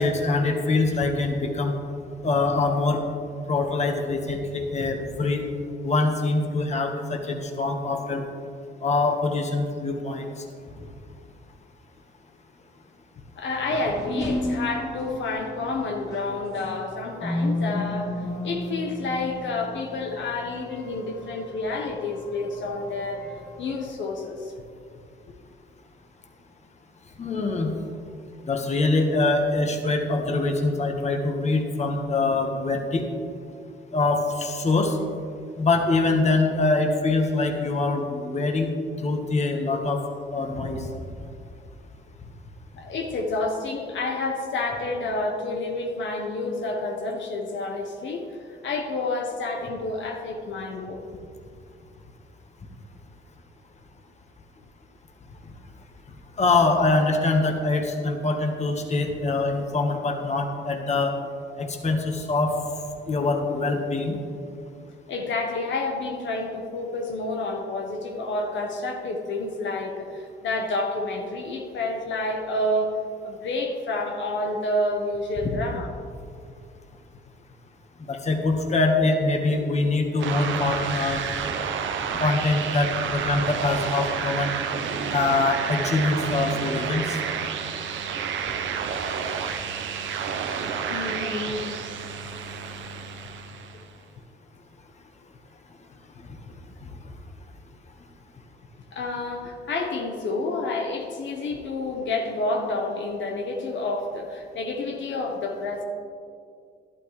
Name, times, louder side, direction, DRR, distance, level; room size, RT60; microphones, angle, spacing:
voice 1, 0.0-1.7 2.2-3.0 3.5-5.5 5.8-8.2 8.8-10.3 27.2-27.7 28.4-33.0 33.9-35.0 35.6-38.7 39.0-40.0 40.3-40.9 56.4-61.1 61.6-62.5 63.1-64.2 75.4-75.5 78.1-81.2 82.2-84.5 85.1-87.2 91.2-91.3, left 3 dB, 35° left, 3 dB, 1.4 m, -24 dB
voice 2, 13.4-18.1 18.4-23.2 23.6-24.5 42.8-51.0 65.1-73.0 73.2-75.9 90.7-91.7 98.9-105.8, left 2 dB, 70° left, 1 dB, 1.2 m, -29 dB
sound 1, 13.5-23.8, left 1 dB, 15° left, 2.0 m, -33 dB
sound 2, 80.2-93.9, right 7 dB, 75° right, 0.8 m, -30 dB
12.0 x 11.5 x 3.3 m, 2.3 s
cardioid pair, 90°, 20 cm